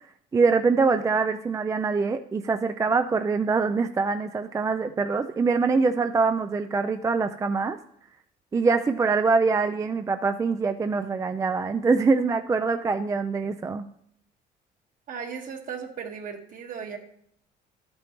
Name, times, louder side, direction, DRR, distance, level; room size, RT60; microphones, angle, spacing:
voice 1, 0.3-7.8 8.5-13.9, right 4 dB, 20° right, 9 dB, 0.4 m, -24 dB
voice 2, 15.1-17.0, right 6 dB, 55° right, 3 dB, 1.5 m, -36 dB
12.0 x 8.6 x 3.0 m, 0.70 s
cardioid pair, 110°, 17 cm